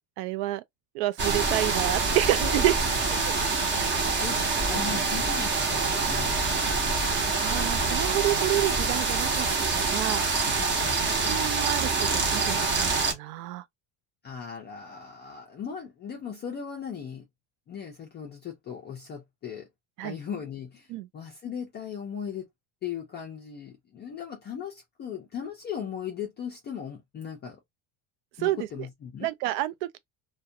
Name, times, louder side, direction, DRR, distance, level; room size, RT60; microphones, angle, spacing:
voice 1, 0.2-0.6 0.9-2.9 7.4-9.5 9.7-10.3 11.1-13.6 20.0-20.1 20.9-21.1 28.4-28.6 29.2-30.0, right 15 dB, 85° right, 0.5 m, -29 dB
sound 1, 1.2-13.1, right 3 dB, 25° right, 0.6 m, -26 dB
voice 2, 3.9-4.4 4.7-7.2 10.6-11.1 14.2-17.3 17.7-19.7 20.0-22.5 22.8-27.6 28.4-29.3, left 7 dB, 25° left, 0.3 m, -38 dB
2.3 x 2.2 x 2.6 m
cardioid pair, 155°, 48 cm